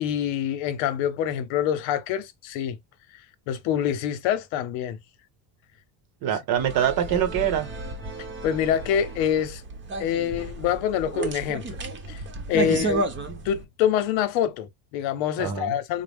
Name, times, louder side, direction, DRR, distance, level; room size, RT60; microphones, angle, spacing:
voice 1, 0.0-2.8 3.5-5.0 6.6-6.7 8.4-9.6 10.0-11.8 12.1-12.2 12.5-13.0 13.4-16.0, left 9 dB, 85° left, 0.8 m, -26 dB
voice 2, 6.2-7.7 12.5-12.9 15.4-15.7, right 9 dB, 55° right, 0.9 m, -25 dB
sound 1, 6.6-13.7, right 3 dB, 25° right, 0.8 m, -32 dB
4.0 x 2.0 x 3.5 m
cardioid pair, 125°, 45 cm